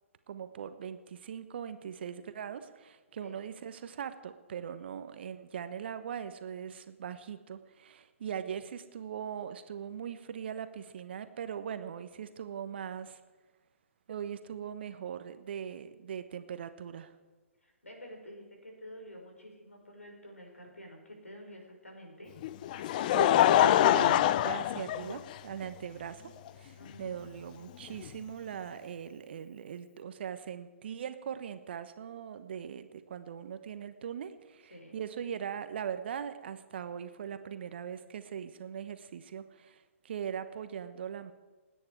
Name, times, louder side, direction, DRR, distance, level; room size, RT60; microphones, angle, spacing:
voice 1, 0.3-13.2 14.1-17.1 22.8-26.2 26.5-41.3, right 8 dB, 50° right, 10 dB, 1.2 m, -40 dB
voice 2, 17.6-22.3 26.8-27.2 34.7-35.0, equal, 80° left, 2 dB, 5.1 m, -49 dB
Laughter, 22.4-25.6 26.5-26.6 28.0-28.1, left 12 dB, 35° left, 0.5 m, -25 dB
28.5 x 9.8 x 4.7 m, 1.2 s
figure-of-eight pair, 125°, 7 cm